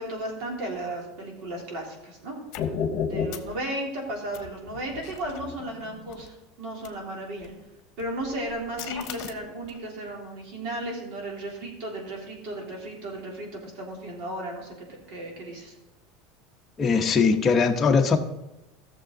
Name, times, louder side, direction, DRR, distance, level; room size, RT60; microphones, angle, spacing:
voice 1, 0.0-2.4 3.0-7.5 8.0-15.7, right 1 dB, 60° right, -1 dB, 3.3 m, -35 dB
sound 1, 2.5-3.6 4.3-6.3 6.8-6.9 7.4-7.6 8.0-9.8, left 6 dB, 55° left, 1.1 m, -33 dB
voice 2, 16.8-18.2, left 5 dB, 25° left, 3 dB, 1.0 m, -20 dB
15.0 x 7.0 x 3.9 m, 0.98 s
supercardioid pair, 150°, 0 cm